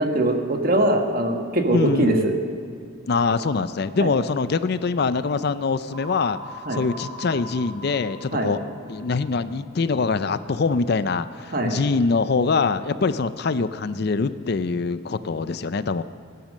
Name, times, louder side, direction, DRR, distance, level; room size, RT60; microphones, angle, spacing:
voice 1, 0.0-2.3 4.0-4.1 6.7-6.8 8.3-8.5 11.5-11.7, right 1 dB, 45° right, 4 dB, 1.5 m, -22 dB
voice 2, 1.7-2.3 3.1-8.6 8.9-16.0, left 4 dB, 50° left, 13 dB, 0.4 m, -24 dB
sound 1, 5.9-9.8, left 1 dB, 30° right, 3.3 m, -41 dB
19.0 x 10.5 x 6.5 m, 2.3 s
head